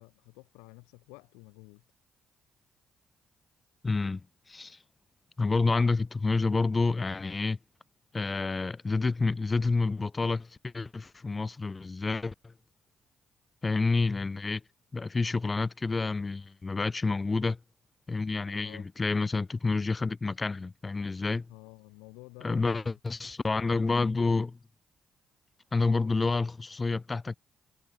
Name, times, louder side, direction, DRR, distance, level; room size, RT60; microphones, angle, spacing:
voice 1, 0.0-1.8 18.6-18.9 21.5-22.9, left 30 dB, 85° left, 7.2 m, -51 dB
voice 2, 3.8-4.8 5.4-7.6 8.1-12.5 13.6-14.6 14.9-17.6 18.1-21.5 22.4-24.6 25.7-27.4, left 3 dB, 30° left, 1.8 m, -29 dB
hypercardioid pair, 45°, 0 cm